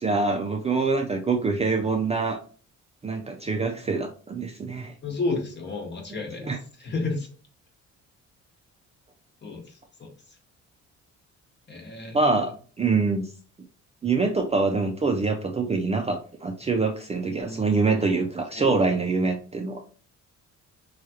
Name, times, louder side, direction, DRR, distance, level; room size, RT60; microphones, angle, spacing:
voice 1, 0.0-2.4 3.0-4.9 6.4-6.6 12.1-13.3 14.0-19.8, right 4 dB, 20° right, 3 dB, 0.4 m, -25 dB
voice 2, 5.0-6.5 6.8-7.3 9.4-10.1 11.7-12.4 17.3-18.9, left 3 dB, 35° left, 2 dB, 1.0 m, -33 dB
3.1 x 2.3 x 2.7 m, 0.40 s
cardioid pair, 90°, 30 cm